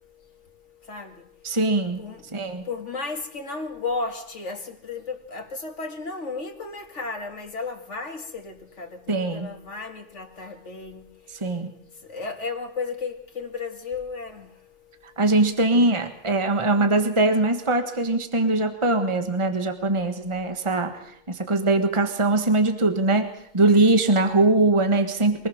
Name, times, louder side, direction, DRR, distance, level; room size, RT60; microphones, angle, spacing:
voice 1, 1.4-2.0 2.3-2.6 9.1-9.5 11.4-11.7 15.2-21.0 21.3-23.3 23.5-25.5, right 2 dB, 25° right, 1.6 m, -21 dB
voice 2, 2.7-11.0 12.1-14.5 15.7-16.0, left 4 dB, 85° left, 2.6 m, -34 dB
24.5 x 19.0 x 6.5 m
omnidirectional pair, 1.2 m